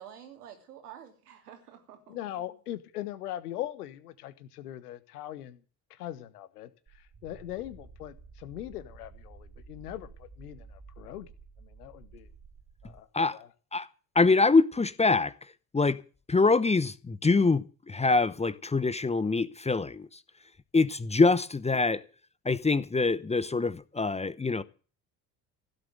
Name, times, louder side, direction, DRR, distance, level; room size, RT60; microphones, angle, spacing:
voice 1, 0.0-2.4, right 9 dB, 75° right, 3.1 m, -49 dB
voice 2, 2.1-5.6 5.9-6.7 6.9-11.3 11.6-12.3 12.8-13.5, left 13 dB, 75° left, 1.5 m, -40 dB
sound 1, 6.9-13.0, right 4 dB, 30° right, 2.3 m, -51 dB
voice 3, 14.1-15.3 15.7-16.0 16.3-20.2 20.7-22.0 22.4-24.6, left 3 dB, 15° left, 0.8 m, -24 dB
16.0 x 7.7 x 9.1 m
figure-of-eight pair, 55°, 46 cm